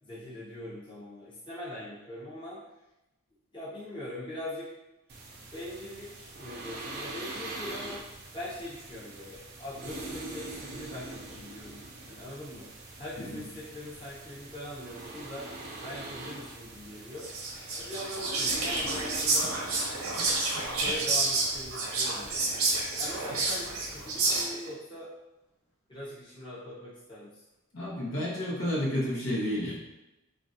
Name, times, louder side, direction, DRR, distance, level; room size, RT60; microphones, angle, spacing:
voice 1, 0.0-2.6 3.5-4.7 5.5-8.1 8.3-12.7 13.0-15.5 15.8-17.3 17.7-19.9 20.6-22.6 23.0-25.1 25.9-27.4 29.6-29.7, left 1 dB, 20° left, -8 dB, 0.7 m, -42 dB
sound 1, 5.1-24.4, right 2 dB, 45° right, 0.4 m, -44 dB
Whispering, 17.2-24.7, right 3 dB, 85° right, 0.7 m, -29 dB
voice 2, 27.7-29.7, left 1 dB, 70° left, -5 dB, 0.8 m, -31 dB
3.1 x 2.4 x 2.6 m, 0.94 s
head